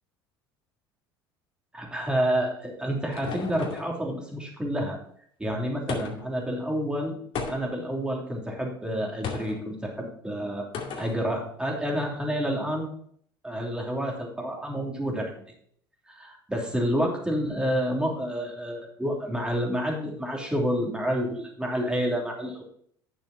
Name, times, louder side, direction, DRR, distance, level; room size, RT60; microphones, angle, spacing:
voice 1, 1.7-5.0 5.4-7.2 7.5-10.7 11.0-12.9 13.4-15.4 16.1-22.6, equal, 5° right, -1 dB, 3.2 m, -29 dB
sound 1, 2.4-4.0 5.9-6.4 7.3-7.9 9.2-9.6 10.7-11.2, left 5 dB, 50° left, 2.2 m, -35 dB
9.2 x 7.1 x 4.4 m, 0.63 s
hypercardioid pair, 75°, 12 cm